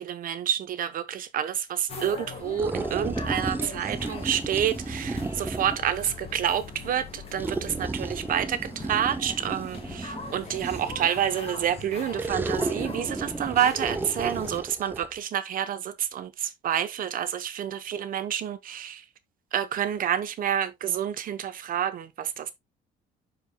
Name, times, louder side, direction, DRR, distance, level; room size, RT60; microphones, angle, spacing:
voice 1, 0.0-19.0 19.5-22.5, right 9 dB, 55° right, 0.9 m, -28 dB
sound 1, 1.9-14.6, left 4 dB, 35° left, 2.0 m, -41 dB
sound 2, 2.6-5.9 7.4-11.2 12.1-15.1, right 3 dB, 10° right, 0.6 m, -33 dB
12.0 x 4.9 x 2.2 m
cardioid pair, 110°, 17 cm